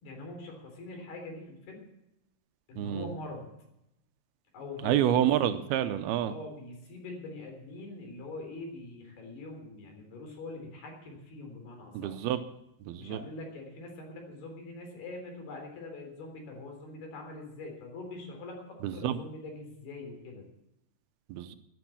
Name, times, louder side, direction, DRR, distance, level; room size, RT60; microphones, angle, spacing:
voice 1, 0.0-1.8 2.7-3.5 4.5-5.3 6.2-12.1 13.0-20.5, left 2 dB, 75° left, 2 dB, 5.6 m, -43 dB
voice 2, 2.8-3.1 4.8-6.3 11.9-12.4 12.9-13.2 18.8-19.2 21.3-21.6, right 11 dB, 80° right, 11 dB, 2.6 m, -28 dB
12.5 x 11.5 x 8.5 m, 0.84 s
omnidirectional pair, 4.6 m